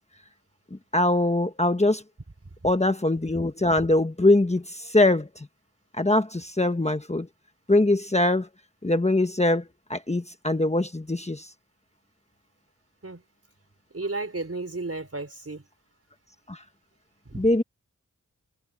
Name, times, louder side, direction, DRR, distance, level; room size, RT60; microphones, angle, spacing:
voice 1, 0.9-2.0 2.6-5.5 6.0-7.3 7.7-8.5 8.8-9.6 9.9-11.5 16.5-16.6 17.3-17.6, left 2 dB, 20° left, 1.2 m, -22 dB
voice 2, 13.9-15.6 17.3-17.5, right 2 dB, 50° right, 5.0 m, -33 dB
wide cardioid pair, 45°, 31 cm